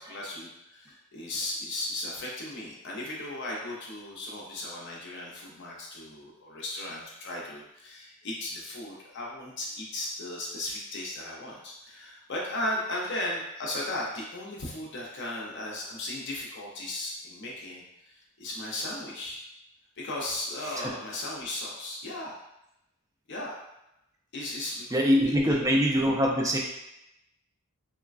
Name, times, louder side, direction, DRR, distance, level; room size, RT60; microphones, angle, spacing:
voice 1, 0.0-19.4 20.0-22.3 23.3-23.6 24.3-24.9 25.2-25.6, left 1 dB, 55° left, -3 dB, 0.6 m, -36 dB
voice 2, 24.9-26.6, equal, 15° right, -1 dB, 0.3 m, -24 dB
3.1 x 2.2 x 2.4 m, 0.87 s
head